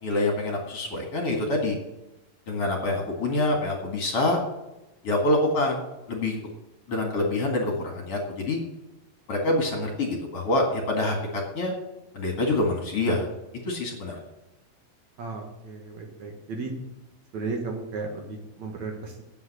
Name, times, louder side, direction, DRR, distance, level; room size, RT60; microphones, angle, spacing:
voice 1, 0.0-1.8 2.5-4.4 5.0-6.4 6.9-8.6 9.3-11.7 12.1-13.3 13.7-14.2, left 2 dB, 45° left, 1 dB, 2.6 m, -26 dB
voice 2, 15.2-16.7 17.3-19.2, right 4 dB, 60° right, 2 dB, 2.6 m, -34 dB
9.4 x 8.1 x 7.7 m, 0.97 s
omnidirectional pair, 4.0 m